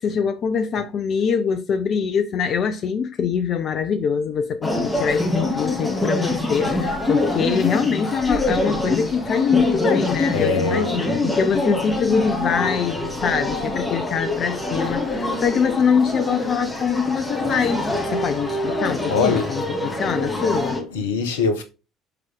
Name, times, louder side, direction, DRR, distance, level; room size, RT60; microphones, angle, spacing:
voice 1, 0.0-20.8, left 6 dB, 45° left, 0.5 m, -23 dB
sound 1, 4.6-20.8, left 2 dB, 10° left, 2.5 m, -25 dB
voice 2, 10.3-11.0 19.1-19.5 20.9-21.6, left 4 dB, 75° left, 1.1 m, -22 dB
6.8 x 4.6 x 3.6 m
figure-of-eight pair, 55°, 0 cm